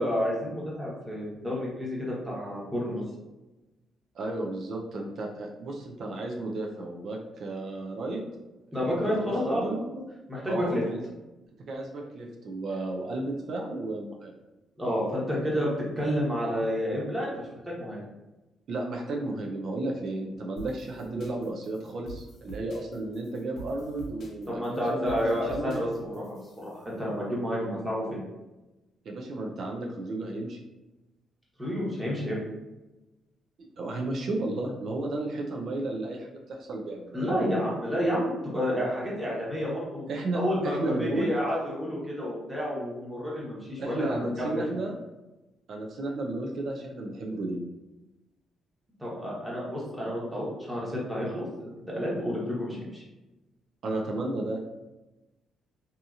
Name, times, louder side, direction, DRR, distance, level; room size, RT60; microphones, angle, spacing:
voice 1, 0.0-3.0 8.7-10.0 10.3-10.8 14.8-15.7 16.0-17.5 17.8-18.0 24.5-28.2 31.6-32.4 37.1-40.0 40.3-44.7 49.0-53.0, equal, 10° right, -6 dB, 1.1 m, -30 dB
voice 2, 4.1-8.2 8.7-9.8 10.5-11.0 11.7-14.3 18.7-25.8 29.0-30.6 33.8-37.3 40.1-41.3 43.8-45.0 45.7-47.6 53.8-54.6, right 2 dB, 60° right, 0 dB, 0.5 m, -33 dB
sound 1, 20.6-26.9, right 3 dB, 60° left, 0.6 m, -46 dB
2.7 x 2.7 x 2.4 m, 1.0 s
cardioid pair, 90°, 0 cm